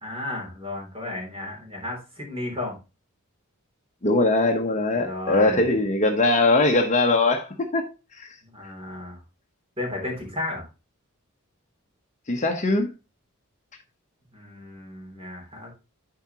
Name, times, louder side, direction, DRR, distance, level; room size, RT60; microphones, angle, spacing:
voice 1, 0.0-2.8 4.9-5.8 8.4-9.2 9.8-10.7 14.3-15.7, left 2 dB, 25° right, 3.1 m, -33 dB
voice 2, 4.0-7.8 8.2-8.3 12.3-12.9, left 2 dB, 35° left, 0.9 m, -21 dB
11.5 x 4.6 x 2.9 m
head